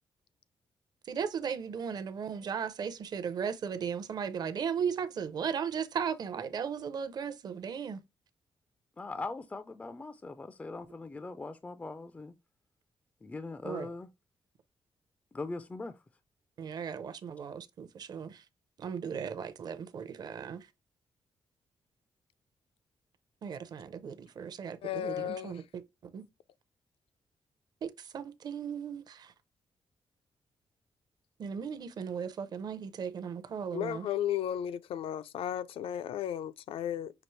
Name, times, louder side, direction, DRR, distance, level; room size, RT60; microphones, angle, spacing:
voice 1, 1.1-8.0 13.6-13.9 16.6-18.4 18.8-20.7 23.4-25.8 26.1-26.2 27.8-29.3 31.4-34.1, right 7 dB, 45° right, 0.6 m, -36 dB
voice 2, 9.0-12.3 13.2-14.1 15.3-15.9, left 3 dB, 15° left, 0.3 m, -40 dB
voice 3, 24.8-25.6 33.7-37.1, left 10 dB, 75° left, 0.4 m, -34 dB
6.0 x 2.8 x 3.1 m
wide cardioid pair, 180°, 10 cm